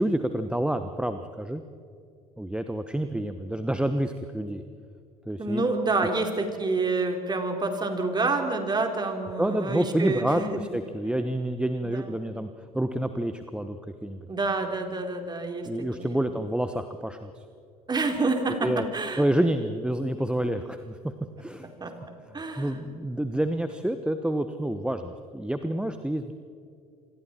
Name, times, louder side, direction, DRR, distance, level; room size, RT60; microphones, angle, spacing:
voice 1, 0.0-1.6 2.4-4.6 5.3-5.6 9.4-12.5 12.7-14.3 15.6-17.3 18.6-18.9 19.2-21.0 21.4-21.7 22.6-26.3, right 1 dB, 5° right, 9 dB, 1.1 m, -28 dB
voice 2, 5.4-10.6 11.8-12.2 14.3-16.2 17.9-19.3 21.8-21.9 22.3-22.8, right 3 dB, 20° right, 5 dB, 3.7 m, -28 dB
28.0 x 25.5 x 4.5 m, 2.4 s
figure-of-eight pair, 70°, 20 cm